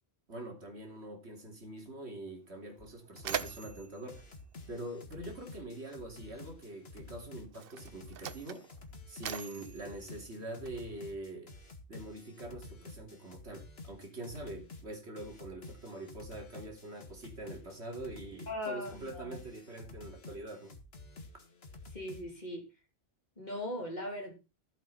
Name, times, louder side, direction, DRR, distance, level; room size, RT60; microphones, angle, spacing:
voice 1, 0.3-4.3 4.7-8.6 9.1-11.5 11.9-20.7, right 1 dB, 85° right, 2 dB, 3.2 m, -44 dB
Mechanisms, 2.3-2.4 2.7-5.5 6.5-6.6 7.4-11.0, right 9 dB, 65° right, 0.9 m, -43 dB
sound 1, 2.8-2.9 3.2-3.8 4.1-22.3, left 2 dB, 70° left, 1.8 m, -51 dB
voice 2, 18.5-19.4 21.9-22.6 23.4-24.3, left 1 dB, 40° left, 0 dB, 3.6 m, -39 dB
14.0 x 7.6 x 4.2 m, 0.29 s
omnidirectional pair, 1.1 m